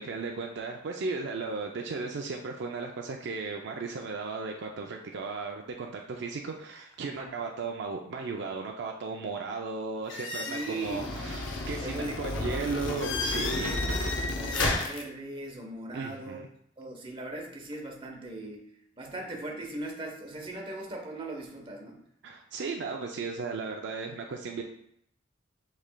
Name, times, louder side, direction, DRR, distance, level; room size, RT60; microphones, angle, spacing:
voice 1, 0.0-13.8 14.4-14.7 15.9-16.5 22.2-24.6, right 4 dB, 65° right, 1 dB, 0.4 m, -36 dB
sound 1, 10.1-15.0, left 2 dB, 75° left, 0.7 m, -31 dB
voice 2, 10.5-11.1 11.8-12.6 14.3-16.4 16.8-18.7 19.0-22.0, right 2 dB, 30° right, 0 dB, 0.9 m, -39 dB
7.2 x 3.2 x 2.2 m, 0.73 s
head